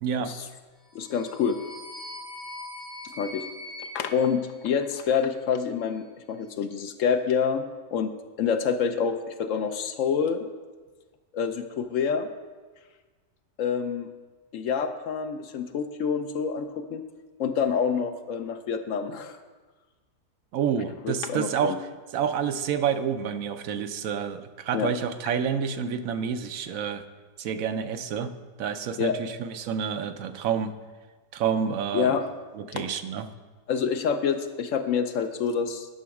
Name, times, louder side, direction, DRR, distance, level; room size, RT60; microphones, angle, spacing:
voice 1, 0.0-0.3 20.5-21.9 22.1-27.0 27.4-28.3 28.6-30.7 31.3-32.2 32.6-33.3, right 7 dB, 70° right, 9 dB, 1.0 m, -28 dB
voice 2, 0.9-1.6 3.0-3.4 3.9-7.6 7.9-8.1 8.4-10.5 11.3-12.3 13.6-14.1 14.5-17.0 17.4-19.4 21.0-21.8 24.7-24.9 29.0-29.1 31.9-32.2 32.8-32.9 33.7-35.9, left 6 dB, 65° left, 8 dB, 0.9 m, -27 dB
sound 1, 0.9-5.2, left 2 dB, 35° left, 3.1 m, -42 dB
10.0 x 6.1 x 4.7 m, 1.3 s
omnidirectional pair, 1.6 m